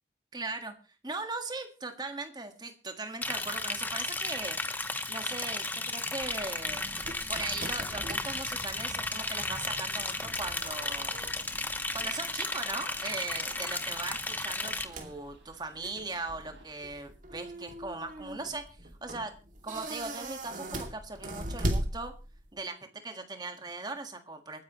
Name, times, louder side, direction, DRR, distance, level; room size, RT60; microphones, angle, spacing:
voice 1, 0.3-0.7 1.0-4.6 5.1-6.8 7.3-11.3 11.9-19.3 19.6-22.1 22.5-24.6, right 3 dB, 25° right, 6 dB, 1.7 m, -39 dB
Liquid, 3.2-14.8, left 2 dB, 10° left, 1.0 m, -34 dB
sound 1, 6.2-22.6, right 1 dB, 45° right, 2.5 m, -40 dB
sound 2, 10.0-16.6, right 3 dB, 75° right, 4.8 m, -56 dB
27.5 x 10.0 x 3.1 m, 0.34 s
head